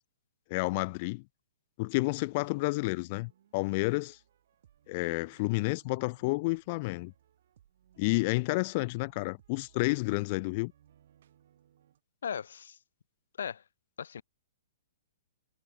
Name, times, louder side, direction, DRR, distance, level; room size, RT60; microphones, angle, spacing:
voice 1, 0.5-1.2 1.8-4.2 4.9-7.1 8.0-10.7, left 25 dB, 35° left, 0.4 m, -30 dB
sound 1, 2.1-12.0, right 10 dB, 55° right, 6.1 m, -64 dB
voice 2, 12.2-12.8 13.4-13.6 14.0-14.2, left 7 dB, 75° left, 0.7 m, -37 dB
hypercardioid pair, 160°, 0 cm